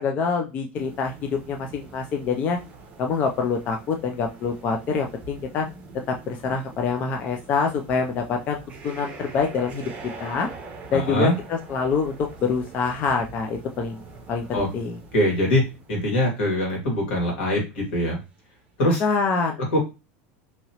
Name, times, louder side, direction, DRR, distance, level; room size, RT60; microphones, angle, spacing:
voice 1, 0.0-2.6 3.0-5.7 6.1-9.8 10.2-10.5 10.9-12.2 12.4-14.0 14.3-15.0 19.0-19.6, left 5 dB, 25° left, 3 dB, 0.3 m, -25 dB
sound 1, 0.7-17.4 17.8-17.9 18.5-18.6, right 3 dB, 20° right, 0.7 m, -44 dB
voice 2, 10.9-11.3 14.5-14.7 15.1-15.6 15.9-18.2 18.8-19.0 19.7-19.8, left 1 dB, 80° left, 0 dB, 1.8 m, -22 dB
2.9 x 2.8 x 2.8 m, 0.27 s
supercardioid pair, 165°, 6 cm